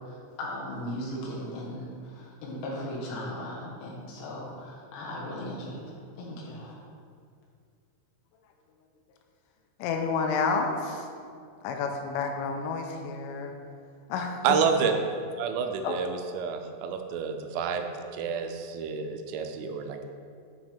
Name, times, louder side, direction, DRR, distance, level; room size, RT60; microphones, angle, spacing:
voice 1, 0.4-6.8, left 1 dB, 70° left, -4 dB, 3.2 m, -37 dB
voice 2, 9.8-11.1 11.6-13.5 14.1-14.4 15.8-16.0, left 4 dB, 90° left, 3 dB, 3.2 m, -30 dB
voice 3, 14.4-14.9 15.4-17.9 18.1-20.0, right 6 dB, 85° right, 6 dB, 3.2 m, -29 dB
10.0 x 5.3 x 3.5 m, 2.2 s
omnidirectional pair, 5.7 m